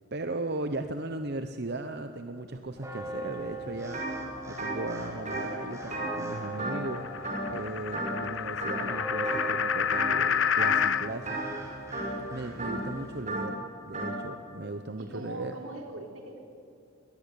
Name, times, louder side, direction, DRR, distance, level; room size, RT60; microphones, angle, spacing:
voice 1, 0.1-4.1 4.5-7.1 7.5-11.4 12.3-13.6 13.9-15.5, right 2 dB, 50° right, 8 dB, 0.9 m, -37 dB
sound 1, 2.8-13.2, right 2 dB, 15° right, 3.2 m, -41 dB
sound 2, 3.9-4.1 4.4-7.0 7.2-7.6 7.9-8.3 8.6-9.4 9.9-10.2 10.5-14.2, right 2 dB, 35° right, 5.4 m, -34 dB
sound 3, 4.4-11.1, left 8 dB, 65° left, 0.6 m, -30 dB
voice 2, 15.0-16.4, right 2 dB, 80° right, 2 dB, 4.1 m, -41 dB
22.5 x 19.0 x 8.6 m, 2.6 s
head